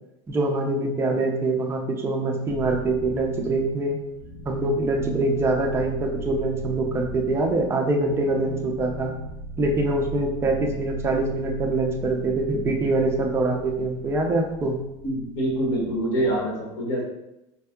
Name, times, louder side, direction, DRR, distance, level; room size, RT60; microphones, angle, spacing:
voice 1, 0.3-4.0 4.5-9.1 9.6-14.8, right 2 dB, 15° right, 1 dB, 0.5 m, -24 dB
sound 1, 2.5-16.5, right 1 dB, 80° left, 0.9 m, -39 dB
voice 2, 15.0-17.0, right 1 dB, 65° left, -2 dB, 1.3 m, -25 dB
5.2 x 2.6 x 2.3 m, 0.88 s
supercardioid pair, 150°, 15 cm